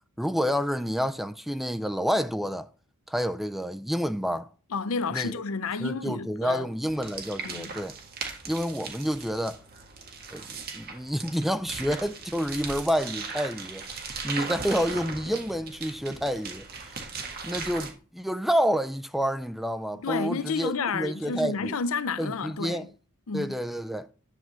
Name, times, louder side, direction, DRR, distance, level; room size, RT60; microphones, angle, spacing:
voice 1, 0.2-2.7 3.1-4.5 5.1-5.3 5.8-8.0 8.5-9.6 10.3-10.4 10.7-13.9 14.2-16.6 17.2-21.7 22.2-22.9 23.3-24.1, equal, ahead, 0.4 m, -29 dB
voice 2, 4.7-6.7 7.4-7.7 20.0-22.9 23.3-23.5, left 4 dB, 65° left, 0.6 m, -30 dB
sound 1, 6.8-17.9, right 4 dB, 45° right, 1.8 m, -38 dB
11.0 x 3.8 x 7.6 m
head